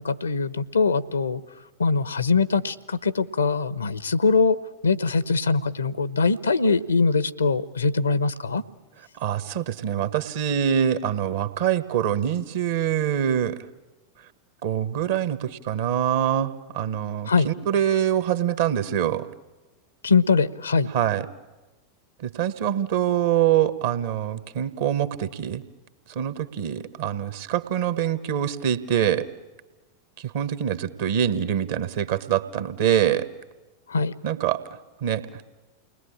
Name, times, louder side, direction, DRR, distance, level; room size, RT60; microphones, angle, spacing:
voice 1, 0.0-1.4 1.8-4.6 4.8-8.6 17.3-17.5 20.0-20.9 33.9-34.1, left 4 dB, 75° left, 17 dB, 0.9 m, -22 dB
voice 2, 9.2-13.6 14.6-19.3 20.9-21.3 22.2-25.6 26.1-29.2 30.2-33.3 34.2-34.6 35.0-35.2, right 10 dB, 55° right, 12 dB, 1.4 m, -24 dB
29.5 x 20.5 x 8.7 m, 1.2 s
figure-of-eight pair, 90°, 0 cm